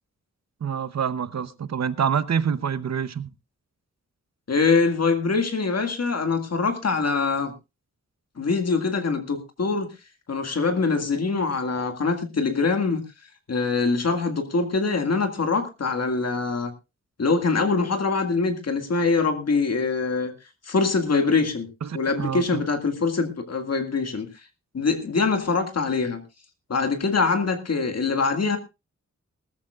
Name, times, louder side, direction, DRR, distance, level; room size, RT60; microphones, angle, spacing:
voice 1, 0.6-3.3 21.8-22.6, right 7 dB, 65° right, 0.9 m, -26 dB
voice 2, 4.5-7.5 8.4-9.9 10.3-13.0 13.5-16.7 17.2-20.3 20.7-21.7 21.9-24.3 24.7-26.2 26.7-28.6, left 4 dB, 60° left, 2.0 m, -23 dB
19.5 x 13.5 x 2.4 m
wide cardioid pair, 145°, 29 cm